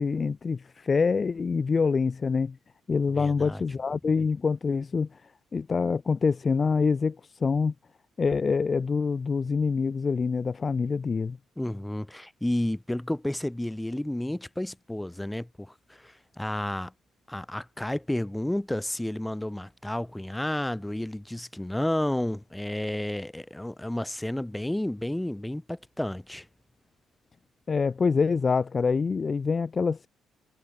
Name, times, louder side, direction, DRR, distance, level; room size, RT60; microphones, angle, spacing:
voice 1, 0.0-2.6 2.9-5.2 5.5-7.7 8.2-11.4 27.7-30.1, left 5 dB, 35° left, 5.6 m, -26 dB
voice 2, 3.1-3.6 11.6-16.9 17.3-26.5, left 1 dB, 5° left, 3.8 m, -31 dB
cardioid pair, 90°, 0 cm